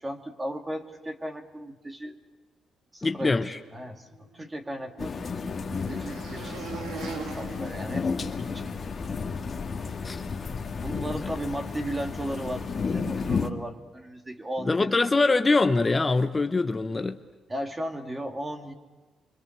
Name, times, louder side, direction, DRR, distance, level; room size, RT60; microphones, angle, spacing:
voice 1, 0.0-2.2 2.9-5.2 5.7-8.3 8.5-8.9 10.8-15.1 17.5-18.7, right 1 dB, 20° right, 2.6 m, -36 dB
voice 2, 3.0-3.6 10.0-10.2 14.6-17.2, left 3 dB, 30° left, 0.9 m, -23 dB
sound 1, 4.2-8.8, right 4 dB, 85° right, 3.7 m, -41 dB
sound 2, 5.0-13.5, left 5 dB, 45° left, 2.0 m, -32 dB
26.5 x 25.0 x 6.7 m
cardioid pair, 70°, 0 cm